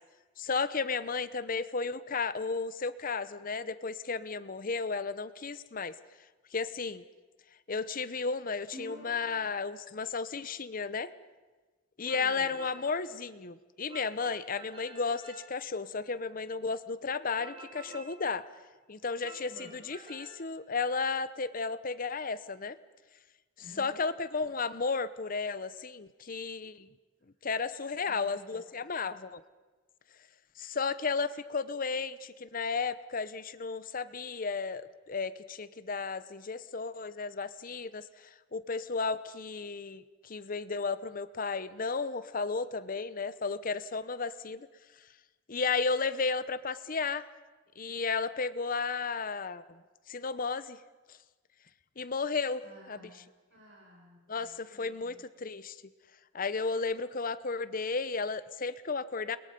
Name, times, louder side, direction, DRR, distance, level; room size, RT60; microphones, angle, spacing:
voice 1, 0.4-5.9 6.5-7.0 7.7-11.1 12.0-18.5 18.9-22.8 23.8-26.9 27.4-29.4 30.6-38.0 38.5-44.7 45.5-47.3 47.8-49.6 50.1-50.8 52.0-52.6 54.3-55.1 55.4-55.8 56.3-59.4, left 4 dB, 45° left, 14 dB, 0.8 m, -33 dB
sound 1, 8.7-9.4 12.1-12.9 13.9-15.5 17.4-18.2 19.2-20.3, right 1 dB, 30° right, 4.0 m, -49 dB
voice 2, 12.1-12.5 19.4-19.8 23.6-24.0 27.2-27.3 28.0-28.6 52.6-55.2, left 1 dB, 80° right, -4 dB, 5.9 m, -53 dB
29.0 x 22.0 x 5.3 m, 1.3 s
head